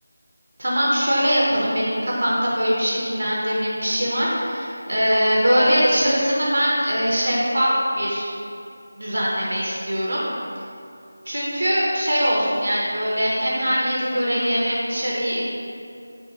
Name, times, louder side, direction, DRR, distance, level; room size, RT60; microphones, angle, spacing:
voice 1, 0.6-8.3 9.0-10.2 11.2-15.4, equal, 75° right, -6 dB, 0.7 m, -22 dB
3.5 x 2.6 x 2.8 m, 2.5 s
figure-of-eight pair, 175°, 0 cm